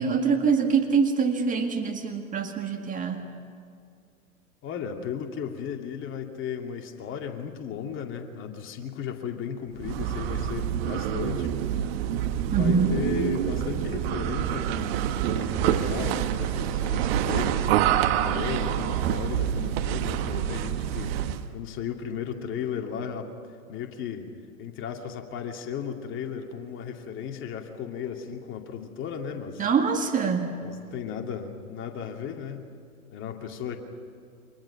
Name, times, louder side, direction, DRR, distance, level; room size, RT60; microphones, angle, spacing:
voice 1, 0.0-3.3 12.5-13.0 29.6-30.6, right 5 dB, 20° right, 3 dB, 1.8 m, -24 dB
voice 2, 4.6-11.5 12.6-21.2 21.5-23.3 23.7-24.3 24.6-29.6 30.6-32.7 33.1-33.8, left 7 dB, 30° left, 3 dB, 2.5 m, -35 dB
sound 1, 9.8-21.5, right 10 dB, 45° right, 1.3 m, -27 dB
30.0 x 25.5 x 5.9 m, 2.3 s
figure-of-eight pair, 100°, 43 cm